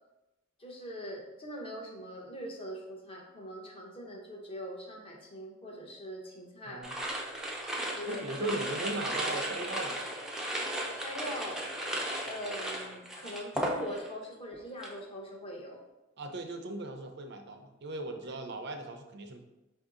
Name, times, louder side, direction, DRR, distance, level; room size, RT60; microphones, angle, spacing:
voice 1, 0.6-6.8 7.9-8.6 10.9-11.7 12.3-15.8 18.2-18.3, equal, 30° left, 0 dB, 0.7 m, -42 dB
voice 2, 6.7-7.0 8.1-10.1 16.2-19.4, right 2 dB, 55° right, 5 dB, 0.5 m, -38 dB
sound 1, 6.8-14.2 14.5-15.0, right 1 dB, ahead, 0.5 m, -35 dB
5.3 x 2.7 x 3.7 m, 0.98 s
head